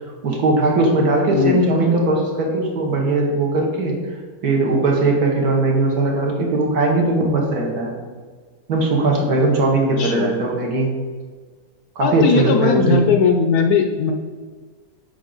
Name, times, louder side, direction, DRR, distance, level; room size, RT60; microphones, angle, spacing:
voice 1, 0.2-4.2 4.4-7.9 8.7-10.9 11.9-13.0, right 2 dB, 60° right, 0 dB, 1.6 m, -19 dB
voice 2, 10.0-10.3 12.0-14.1, left 6 dB, 70° left, 4 dB, 1.0 m, -18 dB
7.2 x 4.9 x 3.9 m, 1.5 s
omnidirectional pair, 1.9 m